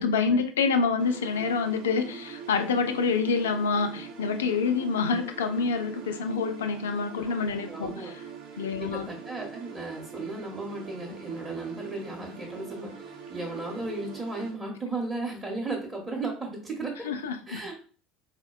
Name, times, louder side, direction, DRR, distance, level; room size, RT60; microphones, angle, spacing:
voice 1, 0.0-8.2 8.6-9.1 17.0-17.6, left 5 dB, 75° left, 8 dB, 0.3 m, -27 dB
sound 1, 1.0-14.5, right 6 dB, 70° right, 0.8 m, -43 dB
voice 2, 7.7-8.1 8.8-17.1 17.5-17.7, right 3 dB, 25° right, -1 dB, 0.8 m, -35 dB
3.9 x 2.1 x 2.3 m, 0.41 s
hypercardioid pair, 70°, 0 cm